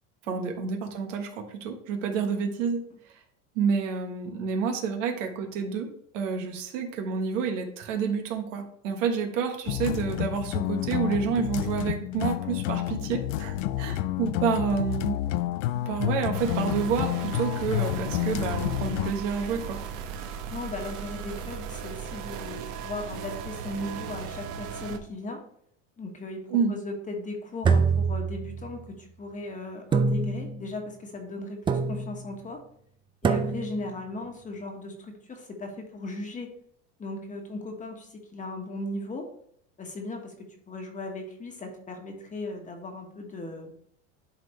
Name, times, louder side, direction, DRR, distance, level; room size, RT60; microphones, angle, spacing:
voice 1, 0.3-2.8 3.5-5.9 6.1-15.2 15.8-19.8 26.5-26.7, right 6 dB, 80° right, 4 dB, 1.5 m, -29 dB
sound 1, 9.7-19.1, left 14 dB, 80° left, 0.5 m, -29 dB
sound 2, 16.3-25.0, right 7 dB, 60° right, 1.1 m, -37 dB
voice 2, 20.5-25.4 26.0-26.4 26.7-32.6 33.2-36.5 37.0-39.3 39.8-40.3 40.7-43.7, left 2 dB, 20° left, 3 dB, 1.4 m, -37 dB
sound 3, 27.6-28.8 29.9-30.7 31.7-32.3 33.2-33.9, right 5 dB, 15° right, 0.4 m, -25 dB
11.0 x 3.8 x 3.2 m, 0.68 s
supercardioid pair, 120°, 37 cm